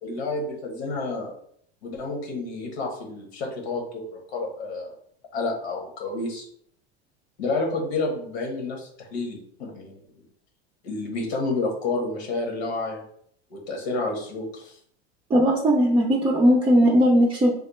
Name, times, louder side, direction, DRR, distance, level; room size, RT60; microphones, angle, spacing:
voice 1, 0.0-1.3 1.8-4.9 5.3-6.5 7.4-10.0 10.8-13.0 13.5-14.7, left 3 dB, 80° left, 1 dB, 1.2 m, -30 dB
voice 2, 15.3-17.5, equal, 15° right, -3 dB, 0.4 m, -18 dB
4.1 x 2.0 x 3.1 m, 0.65 s
hypercardioid pair, 100°, 32 cm